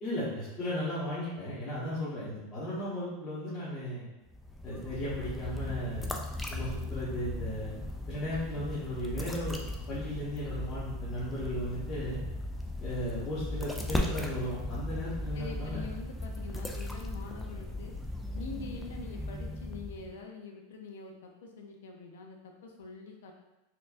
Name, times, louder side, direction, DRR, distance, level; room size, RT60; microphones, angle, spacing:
voice 1, 0.0-4.1 4.6-6.1 6.5-7.8 8.1-9.6 9.9-12.2 12.8-15.8, equal, 30° left, -12 dB, 1.1 m, -35 dB
sound 1, 4.3-20.2, left 1 dB, 5° left, 0.3 m, -37 dB
voice 2, 15.3-18.0 18.3-23.3, left 4 dB, 85° left, 2 dB, 0.6 m, -45 dB
4.3 x 2.6 x 2.6 m, 1.0 s
supercardioid pair, 160°, 0 cm